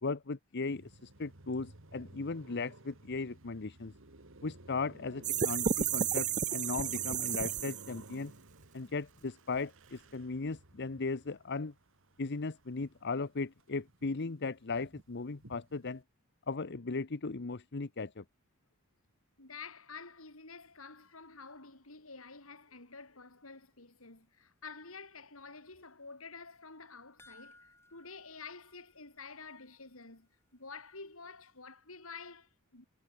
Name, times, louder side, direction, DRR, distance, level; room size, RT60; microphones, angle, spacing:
voice 1, 0.0-3.9 4.4-8.3 8.7-11.7 12.2-16.0 16.5-18.2, left 4 dB, 55° left, 0.9 m, -37 dB
Car passing by, 0.7-13.2 13.5-16.0, right 1 dB, 65° right, 2.5 m, -54 dB
sound 1, 5.2-8.0, right 8 dB, 35° right, 0.6 m, -32 dB
voice 2, 19.4-27.6 27.9-32.9, left 4 dB, 75° left, 5.1 m, -49 dB
sound 2, 27.2-29.7 30.0-30.1 30.6-30.7, left 2 dB, 10° left, 2.3 m, -61 dB
head